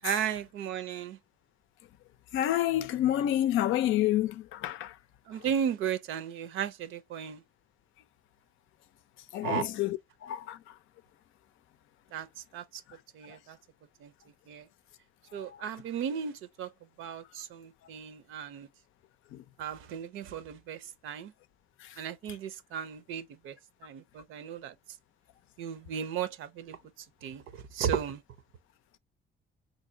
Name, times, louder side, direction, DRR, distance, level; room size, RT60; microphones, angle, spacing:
voice 1, 0.0-1.2 5.3-7.4 9.4-9.7 12.1-12.8 13.1-13.6 14.0-14.1 14.5-14.7 15.3-16.7 17.0-18.7 19.6-21.3 22.0-23.6 23.8-24.7 25.6-28.2, right 8 dB, 85° right, 0.6 m, -35 dB
voice 2, 2.3-4.9 9.3-10.0 10.2-10.6 19.3-19.4, left 12 dB, 85° left, 0.5 m, -28 dB
3.9 x 2.7 x 2.6 m
cardioid pair, 90°, 20 cm